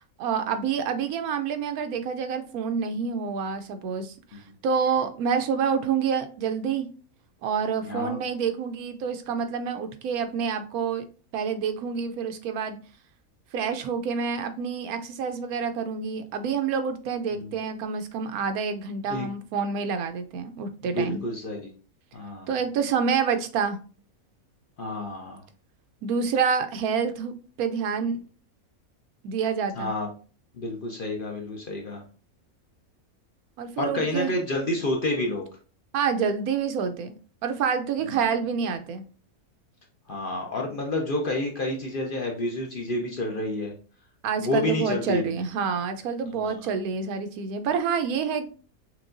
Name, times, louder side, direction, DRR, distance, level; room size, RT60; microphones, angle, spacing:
voice 1, 0.2-6.9 7.4-11.0 11.3-12.8 13.5-21.2 22.5-23.8 26.0-27.3 27.6-28.2 29.2-29.9 33.6-34.7 35.9-37.2 37.4-39.0 44.2-48.5, right 6 dB, 90° right, 8 dB, 1.1 m, -28 dB
voice 2, 7.8-8.2 17.3-17.5 19.1-19.3 20.8-21.7 22.1-22.5 24.8-25.4 29.8-30.1 30.5-32.0 33.8-35.5 38.0-38.2 40.1-43.7 44.4-45.2 46.3-46.6, left 1 dB, 50° left, 1 dB, 0.7 m, -29 dB
5.9 x 2.2 x 2.5 m, 0.37 s
omnidirectional pair, 1.5 m